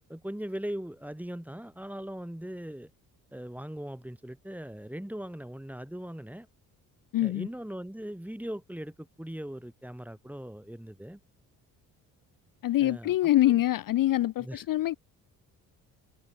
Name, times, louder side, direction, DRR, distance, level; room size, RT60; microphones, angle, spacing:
voice 1, 0.1-2.9 3.3-6.5 7.2-11.2 12.8-13.1 13.5-13.6 14.4-14.6, equal, 5° right, 3.1 m, -39 dB
voice 2, 7.1-7.5 12.6-15.0, left 14 dB, 45° left, 0.7 m, -25 dB
hypercardioid pair, 55°, 45 cm